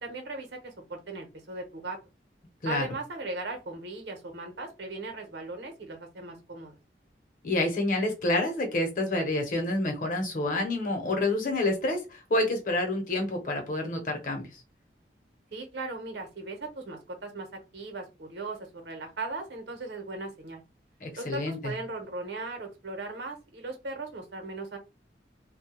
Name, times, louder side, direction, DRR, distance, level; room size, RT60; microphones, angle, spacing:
voice 1, 0.0-2.0 2.6-6.8 15.5-17.5 17.7-18.6 18.8-20.6 21.2-24.8, right 3 dB, 80° right, 4 dB, 0.8 m, -38 dB
voice 2, 7.4-14.6 21.0-21.7, left 2 dB, 50° left, 3 dB, 0.8 m, -28 dB
2.2 x 2.1 x 2.9 m, 0.27 s
head